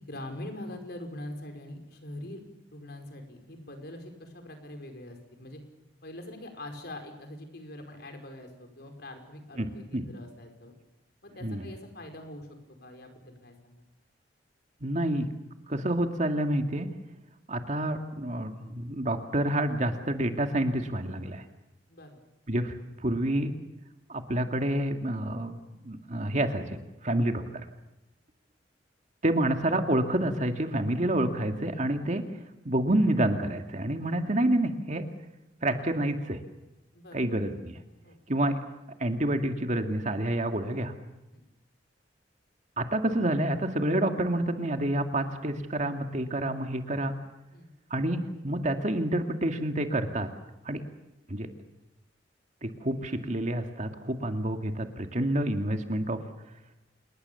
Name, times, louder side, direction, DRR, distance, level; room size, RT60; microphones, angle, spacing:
voice 1, 0.0-2.4 2.7-5.6 6.0-10.7 11.2-12.5 12.8-13.8 21.9-22.2 36.9-37.2 38.0-38.2 41.3-41.4 47.5-47.7, left 1 dB, 65° left, 5 dB, 5.3 m, -43 dB
voice 2, 9.6-10.0 11.4-11.6 14.8-15.3 15.7-16.9 17.5-21.4 22.5-22.8 23.0-23.5 24.1-26.8 27.0-27.4 29.2-32.2 32.6-35.0 35.6-36.4 37.1-37.7 38.3-38.6 39.0-40.9 42.8-47.1 47.9-50.3 50.7-50.8 51.3-51.5 52.6-56.2, right 1 dB, 45° right, 5 dB, 2.2 m, -28 dB
28.0 x 22.0 x 7.0 m, 0.98 s
head